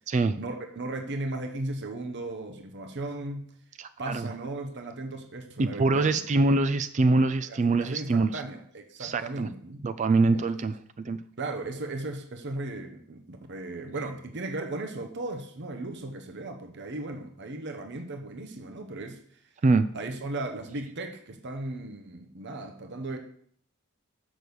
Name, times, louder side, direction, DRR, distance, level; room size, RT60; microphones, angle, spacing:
voice 1, 0.3-3.5 4.0-6.2 7.5-9.8 10.3-10.4 11.4-19.2 19.9-23.2, right 2 dB, 55° right, 5 dB, 0.9 m, -36 dB
voice 2, 3.8-4.3 5.6-8.4 9.0-9.5 9.8-11.2 19.6-19.9, right 3 dB, 35° right, 11 dB, 0.3 m, -24 dB
6.5 x 6.1 x 6.9 m, 0.62 s
head